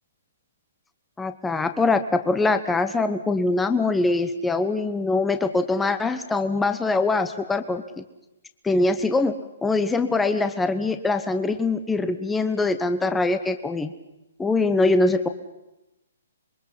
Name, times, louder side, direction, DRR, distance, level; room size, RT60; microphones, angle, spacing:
voice 1, 1.2-8.0 8.6-9.4 9.6-13.9 14.4-15.3, left 3 dB, 5° left, 9 dB, 1.0 m, -23 dB
27.0 x 22.0 x 5.7 m, 0.95 s
hypercardioid pair, 140°, 0 cm